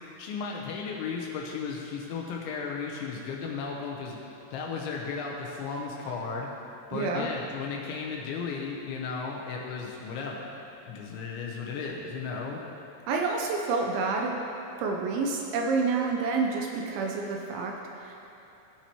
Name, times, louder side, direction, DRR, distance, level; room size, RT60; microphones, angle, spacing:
voice 1, 0.2-4.2 4.5-6.5 6.9-10.5 10.9-12.6, left 5 dB, 80° left, -1 dB, 2.8 m, -35 dB
voice 2, 6.9-7.3 13.1-14.3 14.8-18.2, right 4 dB, 80° right, 1 dB, 2.7 m, -28 dB
16.0 x 7.2 x 3.0 m, 2.8 s
omnidirectional pair, 5.9 m